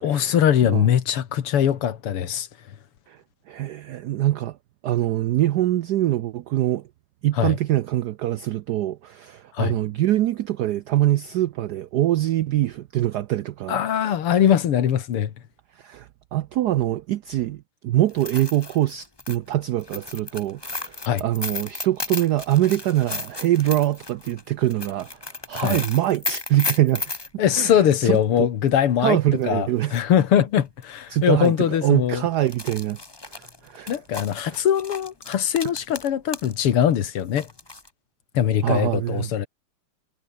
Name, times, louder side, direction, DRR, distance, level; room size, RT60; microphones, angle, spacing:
voice 1, 0.0-2.5 7.4-7.6 9.5-9.8 13.7-15.3 21.1-21.2 25.5-25.8 27.4-29.2 29.4-32.3 33.9-37.5 38.3-39.5, left 9 dB, 90° left, 2.4 m, -21 dB
voice 2, 3.5-4.6 4.8-6.8 7.2-14.4 15.8-25.2 25.5-27.1 27.5-27.7 28.0-28.2 29.0-30.0 31.1-31.5 31.8-33.0 33.3-33.9 38.6-39.3, right 14 dB, 80° right, 0.9 m, -24 dB
sound 1, 18.1-27.3 29.4-29.5 29.9-30.0 30.8-31.0 31.3-31.5 32.3-36.5 36.8-37.9, left 2 dB, 15° left, 0.9 m, -34 dB
omnidirectional pair, 2.4 m